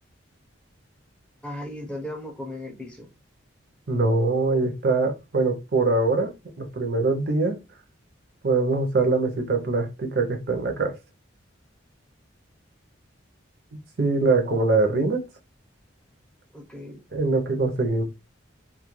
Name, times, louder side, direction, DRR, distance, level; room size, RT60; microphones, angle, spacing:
voice 1, 1.4-3.1 16.5-17.0, left 1 dB, 5° left, 0.4 m, -36 dB
voice 2, 3.9-6.3 6.6-7.6 8.4-10.9 14.0-15.2 17.1-18.0, right 3 dB, 50° right, 0.5 m, -23 dB
2.3 x 2.1 x 2.9 m
head